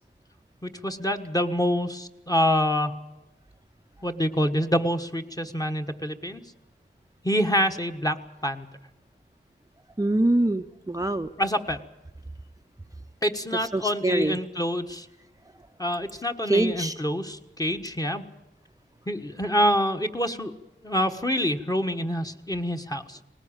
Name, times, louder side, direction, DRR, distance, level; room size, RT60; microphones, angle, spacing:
voice 1, 0.6-2.9 4.0-6.4 7.2-8.7 11.4-11.8 13.2-15.1 15.8-18.2 19.1-20.5 20.8-23.2, equal, 20° left, 9 dB, 1.4 m, -26 dB
voice 2, 10.0-11.3 13.7-14.4 16.5-17.0, right 2 dB, 15° right, 6 dB, 0.7 m, -24 dB
20.0 x 19.5 x 8.9 m, 0.99 s
wide cardioid pair, 55°, 20 cm